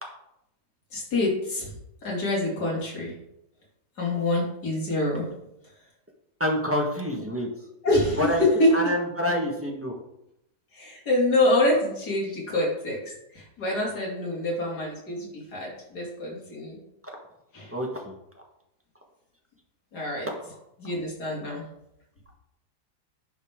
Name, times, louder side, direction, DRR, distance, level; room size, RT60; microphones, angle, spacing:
voice 1, 0.9-1.7 2.0-3.1 4.0-5.3 7.1-7.3 7.8-8.8 10.7-16.8 17.5-17.7 19.9-20.3 20.8-21.6, left 1 dB, 65° left, -4 dB, 3.3 m, -26 dB
voice 2, 6.4-7.5 8.2-8.4 8.7-9.9 17.0-17.1 17.7-17.9, equal, 10° right, 0 dB, 1.1 m, -27 dB
10.5 x 5.4 x 3.7 m, 0.82 s
omnidirectional pair, 1.9 m